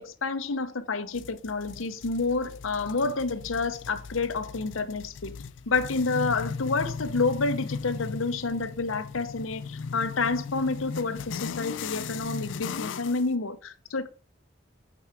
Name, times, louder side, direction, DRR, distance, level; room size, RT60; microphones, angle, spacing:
voice 1, 0.0-5.4 5.7-14.1, left 3 dB, 90° left, 0.8 m, -29 dB
sound 1, 1.1-13.3, left 5 dB, 70° left, 0.4 m, -37 dB
8.7 x 4.7 x 4.8 m
head